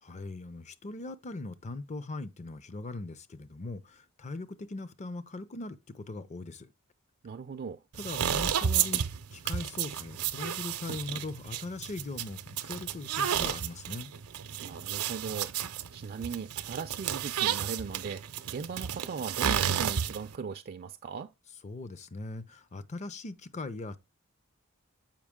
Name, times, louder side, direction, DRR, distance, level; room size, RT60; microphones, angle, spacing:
voice 1, 0.0-6.7 8.0-9.0 9.3-14.1 21.6-24.0, left 2 dB, 30° left, 0.5 m, -40 dB
voice 2, 7.2-7.8 14.6-21.3, right 6 dB, 40° right, 0.3 m, -38 dB
sound 1, 7.9-20.4, right 9 dB, 80° right, 0.6 m, -32 dB
7.3 x 5.0 x 3.6 m
head